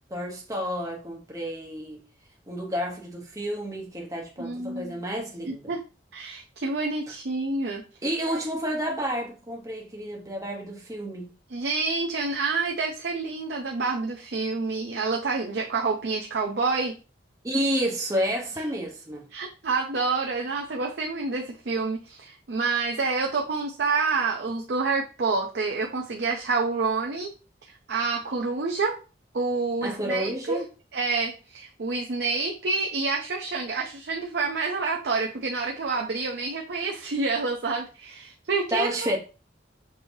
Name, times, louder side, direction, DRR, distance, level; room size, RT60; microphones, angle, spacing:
voice 1, 0.1-2.0 2.5-5.7 8.0-11.3 17.4-19.3 29.8-30.7 38.7-39.2, equal, 20° right, 1.0 m, -30 dB
voice 2, 4.4-5.0 5.5-5.8 6.1-7.8 8.3-8.4 11.5-16.9 19.3-27.3 27.9-29.0 29.3-30.6 30.9-39.1, right 4 dB, 65° right, 0.5 m, -28 dB
6.0 x 3.0 x 2.7 m
head